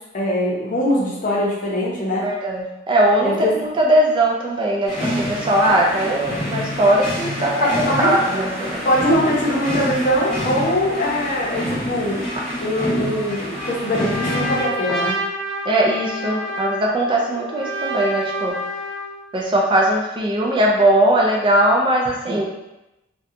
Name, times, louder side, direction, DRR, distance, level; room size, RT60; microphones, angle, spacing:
voice 1, 0.1-2.3 3.2-3.5 7.6-8.1 8.8-12.2 12.6-15.1, equal, 45° left, -4 dB, 0.7 m, -21 dB
voice 2, 2.2-7.7 8.0-8.8 15.7-18.5 19.3-22.4, right 1 dB, 25° right, -1 dB, 0.3 m, -19 dB
sound 1, 4.9-14.6, equal, 5° left, 1.0 m, -27 dB
Trumpet, 13.5-19.2, equal, 85° right, 0.7 m, -28 dB
2.7 x 2.2 x 2.4 m, 0.95 s
head